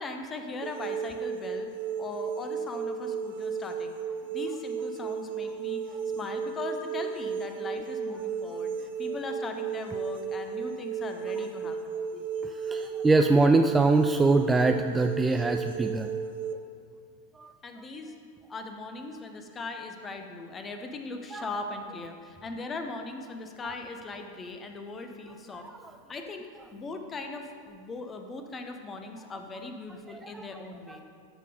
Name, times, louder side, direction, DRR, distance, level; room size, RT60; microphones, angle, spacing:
voice 1, 0.0-1.7 2.0-4.0 4.3-12.0 17.6-18.1 18.5-25.7 26.1-31.0, left 3 dB, 20° left, 5 dB, 0.9 m, -39 dB
sound 1, 0.6-16.5, right 6 dB, 55° right, 0.8 m, -34 dB
voice 2, 12.1-16.2 17.4-17.5 21.3-21.5 30.2-30.5 30.9-31.0, right 3 dB, 10° right, 6 dB, 0.3 m, -24 dB
13.0 x 4.6 x 5.2 m, 2.2 s
figure-of-eight pair, 90°, 0 cm